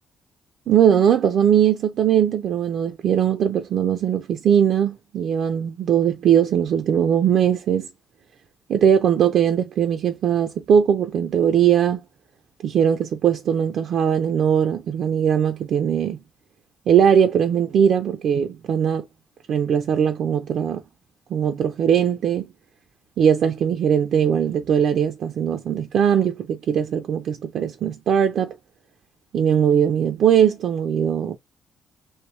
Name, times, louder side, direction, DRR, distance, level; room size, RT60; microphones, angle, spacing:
voice 1, 0.7-7.9 8.7-12.0 12.6-16.2 16.9-19.1 19.5-20.8 21.3-22.5 23.2-28.6 29.3-31.4, right 8 dB, 65° right, 0.4 m, -20 dB
3.1 x 2.6 x 3.0 m
cardioid pair, 105°, 0 cm